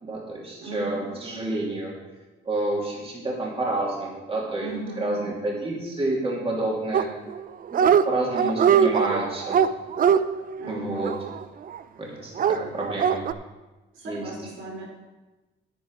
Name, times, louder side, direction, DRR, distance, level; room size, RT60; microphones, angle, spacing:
voice 1, 0.0-1.9 2.4-4.7 5.0-7.1 7.7-9.6 10.7-11.1 12.0-13.2 14.0-14.2, right 2 dB, 30° right, -3 dB, 2.8 m, -29 dB
voice 2, 0.6-1.1 4.5-5.4 10.6-11.2 13.9-14.8, right 3 dB, 85° right, -4 dB, 4.1 m, -36 dB
Dog, 6.9-7.4 7.7-8.0 8.3-11.8 12.4-13.3, right 8 dB, 45° right, 0.5 m, -21 dB
9.7 x 9.5 x 4.8 m, 1.2 s
cardioid pair, 90°, 20 cm